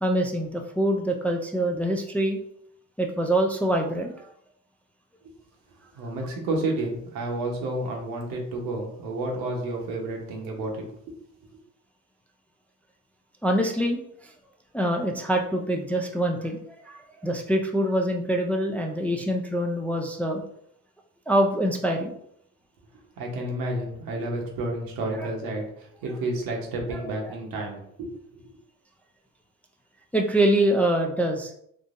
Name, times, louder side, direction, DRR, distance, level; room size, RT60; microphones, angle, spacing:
voice 1, 0.0-2.4 3.0-4.3 13.4-14.0 14.7-20.4 21.3-22.1 25.2-25.3 26.9-27.0 30.1-31.5, right 1 dB, 5° left, 2 dB, 0.3 m, -25 dB
voice 2, 5.9-10.8 23.2-28.4, right 2 dB, 80° right, 0 dB, 1.1 m, -30 dB
3.6 x 2.7 x 2.5 m, 0.70 s
cardioid pair, 90°, 34 cm